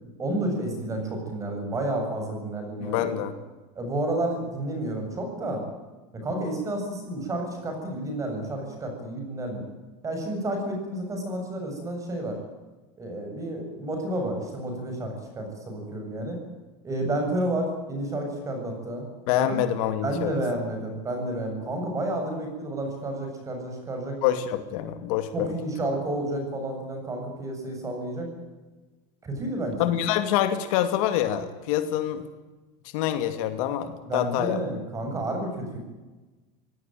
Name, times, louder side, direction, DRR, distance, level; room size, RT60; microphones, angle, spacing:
voice 1, 0.2-3.1 3.7-5.6 6.1-9.6 10.0-12.4 13.0-16.4 16.8-19.0 19.3-19.6 20.0-24.2 25.3-28.3 29.2-29.9 34.0-35.8, right 1 dB, 15° right, 4 dB, 7.5 m, -30 dB
voice 2, 2.8-3.3 19.3-20.3 24.2-25.5 29.8-32.3 32.9-34.6, left 11 dB, 65° left, 9 dB, 2.5 m, -26 dB
25.5 x 17.5 x 9.3 m, 1.2 s
supercardioid pair, 165°, 19 cm